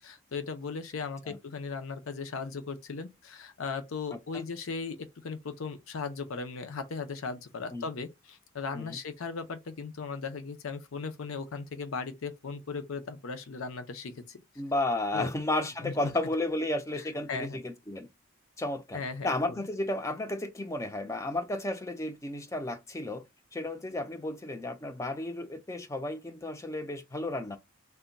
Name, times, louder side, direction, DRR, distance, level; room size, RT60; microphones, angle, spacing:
voice 1, 0.0-14.4 15.1-15.3 15.8-15.9 17.3-17.6 18.9-19.6, left 4 dB, 75° left, 0.6 m, -37 dB
voice 2, 14.6-18.1 18.6-23.2 23.5-27.6, left 2 dB, 15° left, 0.4 m, -33 dB
3.4 x 2.2 x 3.9 m
head